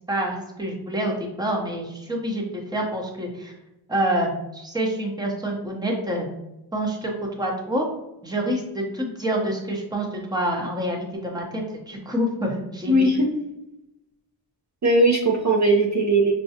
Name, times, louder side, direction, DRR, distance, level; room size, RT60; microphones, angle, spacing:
voice 1, 0.1-3.5 3.9-6.3 6.7-7.9 8.2-13.1, right 1 dB, 10° right, 0 dB, 0.9 m, -27 dB
voice 2, 12.9-13.3 14.8-16.3, right 1 dB, 40° right, -2 dB, 0.7 m, -19 dB
5.6 x 2.2 x 2.8 m, 0.92 s
cardioid pair, 70°, 43 cm